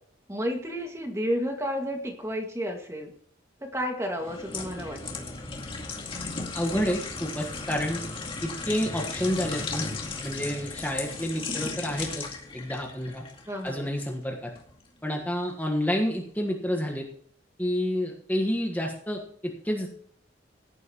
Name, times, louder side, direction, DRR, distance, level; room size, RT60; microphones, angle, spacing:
voice 1, 0.3-3.1 3.6-5.3 13.5-13.9, equal, 15° right, 2 dB, 2.0 m, -31 dB
sound 1, 4.1-14.1 14.5-14.7, left 3 dB, 25° left, 2.2 m, -36 dB
voice 2, 6.5-8.0 8.4-9.8 10.2-12.3 12.5-13.2 13.6-14.5 15.0-17.1 17.6-19.9, equal, 10° left, 0 dB, 1.4 m, -29 dB
17.0 x 11.0 x 3.0 m, 0.62 s
head